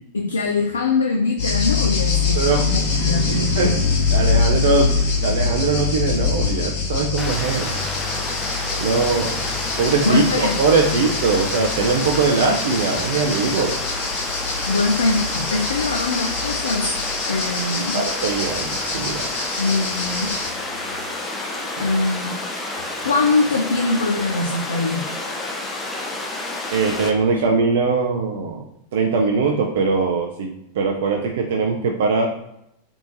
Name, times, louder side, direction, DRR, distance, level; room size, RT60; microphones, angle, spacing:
voice 1, 0.1-3.8 10.0-10.6 10.9-11.0 14.7-16.9 17.3-18.0 19.6-20.4 21.8-22.4 23.0-25.0 27.3-27.4, left 3 dB, 70° left, 2 dB, 0.3 m, -22 dB
sound 1, 1.4-20.5, left 4 dB, 50° left, 1.3 m, -24 dB
voice 2, 4.1-4.9 5.2-7.7 8.8-9.5 9.8-13.7 17.9-19.2 26.7-28.6 28.9-32.3, right 4 dB, 55° right, 0 dB, 0.4 m, -21 dB
Water, 7.2-27.1, left 2 dB, 10° left, 0.5 m, -30 dB
3.5 x 2.5 x 2.9 m, 0.78 s
figure-of-eight pair, 90°, 0 cm